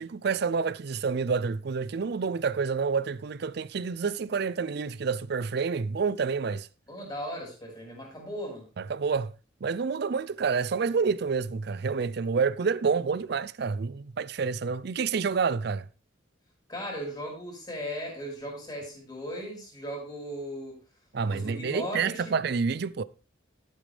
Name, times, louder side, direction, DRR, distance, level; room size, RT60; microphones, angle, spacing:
voice 1, 0.0-6.7 8.8-9.3 9.6-15.9 21.1-23.0, right 5 dB, 55° right, 0.4 m, -28 dB
voice 2, 6.9-8.7 16.7-20.8 21.3-22.3, equal, 20° left, 5.2 m, -37 dB
12.5 x 9.0 x 3.4 m
head